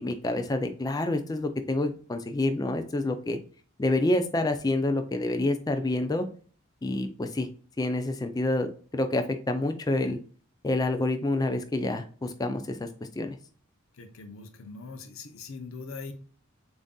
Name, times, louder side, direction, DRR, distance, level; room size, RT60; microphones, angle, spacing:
voice 1, 0.0-3.4 3.8-6.3 6.8-7.5 7.8-10.2 10.6-12.9 13.2-13.4, left 2 dB, 15° left, 7 dB, 0.3 m, -28 dB
voice 2, 13.9-16.1, left 4 dB, 70° left, 7 dB, 0.6 m, -41 dB
6.9 x 2.6 x 2.3 m, 0.41 s
head